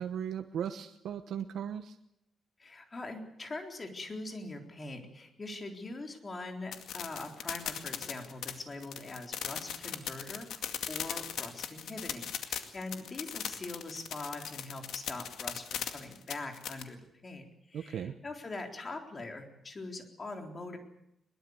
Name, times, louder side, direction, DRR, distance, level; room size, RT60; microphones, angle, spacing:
voice 1, 0.0-2.0 17.7-18.1, right 8 dB, 80° right, 7 dB, 1.1 m, -37 dB
voice 2, 2.6-20.8, left 2 dB, 30° left, 4 dB, 3.9 m, -43 dB
sound 1, 6.7-16.8, left 9 dB, 90° left, 2.2 m, -38 dB
22.0 x 21.5 x 8.1 m, 0.82 s
cardioid pair, 130°, 0 cm